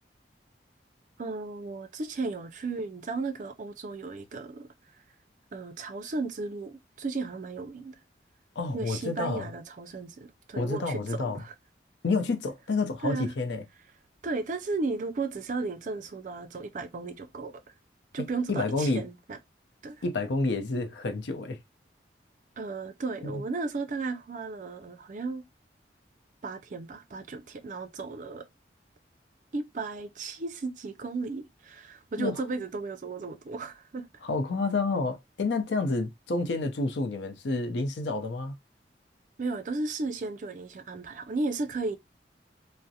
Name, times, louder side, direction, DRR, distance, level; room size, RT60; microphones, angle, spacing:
voice 1, 1.2-4.7 5.5-8.0 8.7-11.5 13.0-13.3 14.2-17.5 18.1-19.4 19.8-20.0 22.6-25.4 26.4-28.4 29.5-34.1 39.4-42.0, right 3 dB, 45° right, 0.4 m, -34 dB
voice 2, 8.6-9.5 10.6-11.4 12.0-13.6 18.2-19.0 20.0-21.6 23.2-23.4 32.2-32.4 34.2-38.6, left 3 dB, 80° left, 0.5 m, -29 dB
2.4 x 2.0 x 2.7 m
head